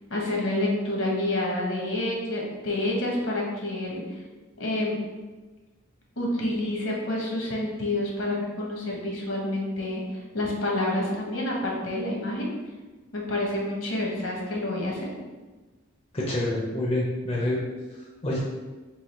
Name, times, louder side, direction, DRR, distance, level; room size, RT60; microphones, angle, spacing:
voice 1, 0.1-4.0 4.6-4.9 6.2-10.0 10.3-12.5 13.1-15.1, left 1 dB, 70° left, -2 dB, 1.1 m, -28 dB
voice 2, 16.1-17.6 18.2-18.4, left 1 dB, 25° left, -4 dB, 0.5 m, -27 dB
3.7 x 2.8 x 4.2 m, 1.2 s
head